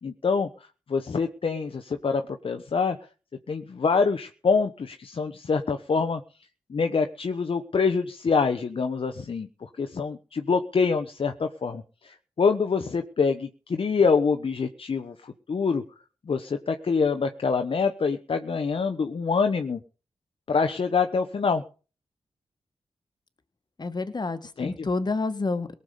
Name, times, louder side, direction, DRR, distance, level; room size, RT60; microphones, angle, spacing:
voice 1, 0.0-3.0 3.5-6.2 6.7-15.8 16.2-19.8 20.5-21.6 24.6-24.9, left 5 dB, 60° left, 5 dB, 1.2 m, -25 dB
voice 2, 23.8-25.7, left 3 dB, 40° left, 9 dB, 2.0 m, -29 dB
18.5 x 7.1 x 6.7 m, 0.36 s
cardioid pair, 60°, 11 cm